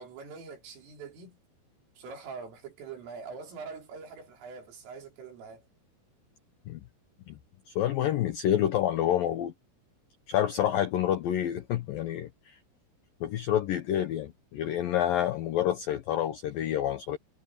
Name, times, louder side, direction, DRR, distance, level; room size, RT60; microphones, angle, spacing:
voice 1, 0.0-1.4 2.0-5.7, right 5 dB, 85° right, 7.6 m, -44 dB
voice 2, 7.7-9.5 10.3-12.6 13.2-17.2, left 11 dB, 90° left, 2.0 m, -28 dB
omnidirectional pair, 5.7 m